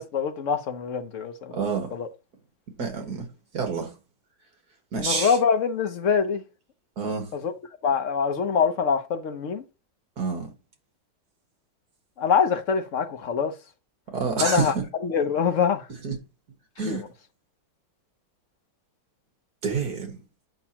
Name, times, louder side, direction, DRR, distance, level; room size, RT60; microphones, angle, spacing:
voice 1, 0.0-1.6 1.9-2.1 5.0-6.4 7.3-7.5 7.8-9.6 12.2-13.5 14.4-14.7 15.0-15.9 16.9-17.1, left 6 dB, 50° left, 1.0 m, -24 dB
voice 2, 1.5-1.9 2.8-3.3 3.5-3.9 4.9-5.4 7.0-7.3 10.2-10.5 14.1-14.8 16.0-16.1 16.8-17.0 19.6-20.2, right 5 dB, 55° right, 2.1 m, -28 dB
9.0 x 6.2 x 2.9 m
omnidirectional pair, 2.1 m